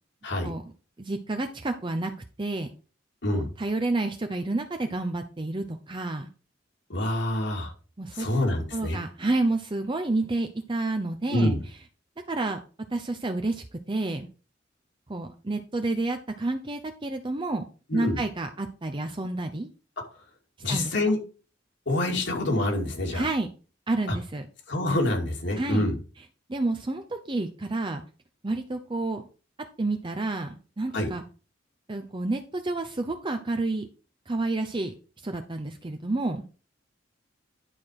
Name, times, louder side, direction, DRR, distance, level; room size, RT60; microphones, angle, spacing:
voice 1, 1.0-2.1 2.4-2.7 3.3-6.3 8.0-8.3 8.7-11.6 12.3-12.6 12.9-14.3 15.1-17.6 17.9-19.7 20.7-20.9 23.1-23.5 23.9-24.5 25.6-25.9 26.5-28.0 28.4-29.2 29.8-31.2 31.9-33.9 34.3-34.9 35.2-36.4, right 2 dB, 25° right, 6 dB, 0.7 m, -29 dB
voice 2, 6.9-7.7 8.1-9.0 11.3-11.6 17.9-18.2 20.6-21.2 21.9-23.3 24.1-24.2 24.7-26.0 30.9-31.1, left 1 dB, 65° left, 1 dB, 2.5 m, -26 dB
10.5 x 4.5 x 4.8 m, 0.36 s
head